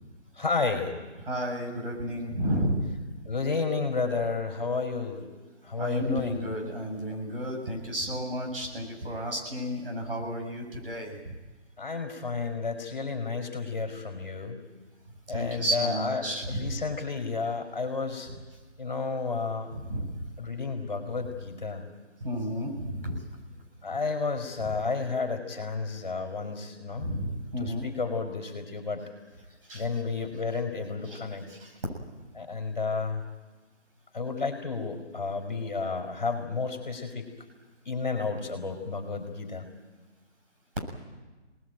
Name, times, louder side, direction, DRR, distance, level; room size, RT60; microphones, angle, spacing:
voice 1, 0.4-1.0 3.2-5.3 5.6-6.5 11.8-14.6 15.3-18.3 18.8-19.7 20.4-21.9 23.8-27.1 27.6-29.0 29.7-31.5 32.3-33.2 34.1-37.3 37.8-39.7, left 4 dB, 40° left, 3 dB, 4.6 m, -31 dB
voice 2, 1.3-3.0 5.8-11.3 15.3-16.8 19.7-20.3 22.2-23.2 24.6-24.7 27.0-27.9 29.6-29.9 31.1-31.2 31.5-31.7, equal, 50° right, 0 dB, 7.2 m, -32 dB
25.5 x 19.5 x 9.2 m, 1.2 s
figure-of-eight pair, 165°, 35 cm